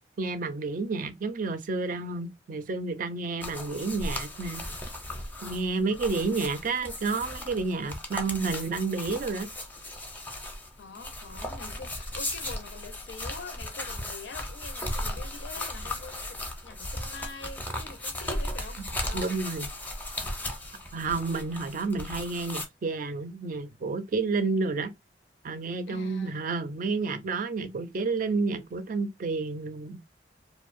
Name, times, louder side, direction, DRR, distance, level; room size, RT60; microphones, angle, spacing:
voice 1, 0.2-4.6 5.4-9.5 19.1-19.7 20.9-24.9 25.4-30.0, right 4 dB, 50° right, 0.4 m, -30 dB
sound 1, 3.4-22.7, left 1 dB, 10° left, 0.5 m, -36 dB
voice 2, 10.8-19.4 25.9-26.4, left 4 dB, 75° left, 0.4 m, -44 dB
2.6 x 2.0 x 2.4 m
head